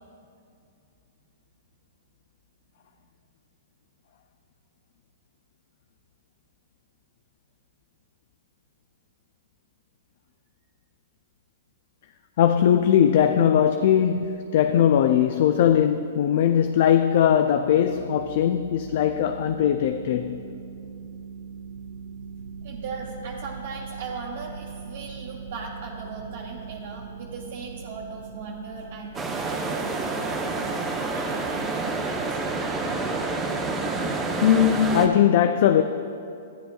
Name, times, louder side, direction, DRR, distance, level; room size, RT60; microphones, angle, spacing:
voice 1, 12.4-20.4 34.4-35.8, left 9 dB, 55° left, 0.3 m, -20 dB
sound 1, 17.5-33.8, right 5 dB, 85° right, 0.6 m, -42 dB
voice 2, 22.6-32.8, right 4 dB, 60° right, 0.9 m, -38 dB
sound 2, 29.1-35.1, right 3 dB, 15° right, 0.7 m, -28 dB
12.5 x 9.9 x 2.3 m
hypercardioid pair, 140°, 0 cm